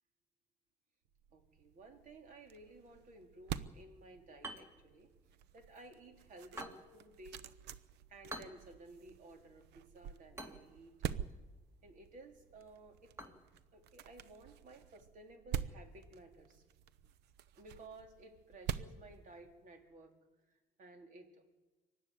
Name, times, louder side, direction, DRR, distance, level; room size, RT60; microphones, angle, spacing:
sound 1, 1.2-19.9, right 9 dB, 85° right, 0.9 m, -47 dB
voice 1, 1.3-5.1 5.5-7.5 8.1-10.9 11.8-13.1 13.7-16.6 17.6-20.1 20.5-21.4, right 2 dB, 50° right, 4 dB, 3.7 m, -56 dB
sound 2, 4.3-14.4, right 1 dB, 15° right, 2.7 m, -54 dB
24.5 x 12.0 x 9.6 m, 1.1 s
cardioid pair, 110°, 17 cm